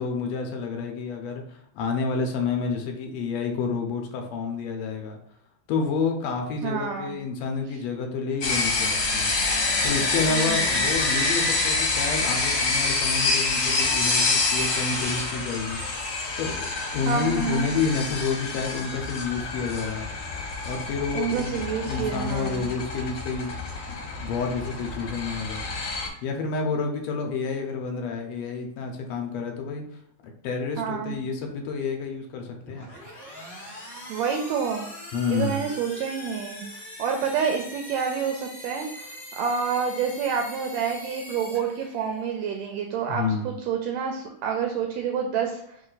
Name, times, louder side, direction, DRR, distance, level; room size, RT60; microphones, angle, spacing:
voice 1, 0.0-5.2 5.7-9.3 9.8-15.8 16.4-20.1 20.6-23.6 24.2-25.7 26.2-29.8 30.2-32.9 35.1-35.6 43.1-43.5, left 4 dB, 75° left, 3 dB, 1.6 m, -29 dB
voice 2, 6.6-7.2 10.3-10.8 17.1-17.7 21.1-22.7 30.8-31.2 34.1-34.9 35.3-45.6, right 6 dB, 80° right, 4 dB, 1.6 m, -28 dB
sound 1, 8.4-26.1, left 3 dB, 60° left, 1.7 m, -27 dB
sound 2, 32.6-42.3, left 1 dB, 30° left, 1.0 m, -42 dB
4.3 x 3.1 x 3.9 m, 0.75 s
omnidirectional pair, 3.5 m